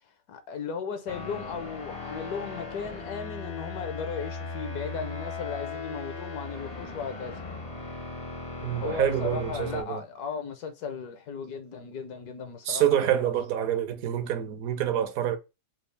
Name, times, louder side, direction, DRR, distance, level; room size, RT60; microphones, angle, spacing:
voice 1, 0.3-7.4 8.7-13.0, left 6 dB, 70° left, 1.3 m, -36 dB
sound 1, 1.1-9.8, left 3 dB, 35° left, 0.6 m, -38 dB
voice 2, 8.6-10.0 12.7-15.4, right 10 dB, 65° right, 1.0 m, -27 dB
4.3 x 2.4 x 3.2 m
omnidirectional pair, 1.8 m